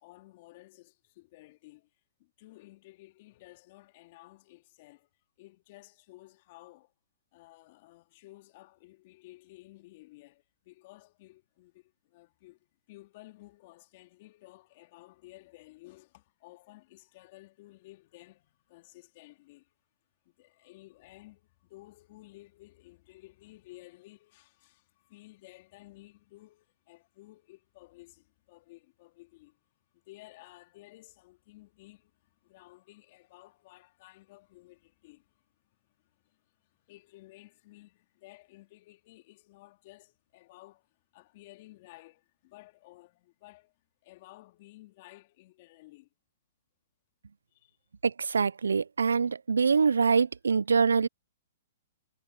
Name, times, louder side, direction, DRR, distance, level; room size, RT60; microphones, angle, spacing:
voice 1, 0.0-1.9 2.2-5.1 5.4-6.9 7.3-19.7 20.2-43.7 44.0-46.1 47.5-47.8, left 19 dB, 45° left, 2.7 m, -55 dB
voice 2, 48.0-51.1, right 5 dB, 85° right, 0.4 m, -24 dB
hypercardioid pair, 130°, 0 cm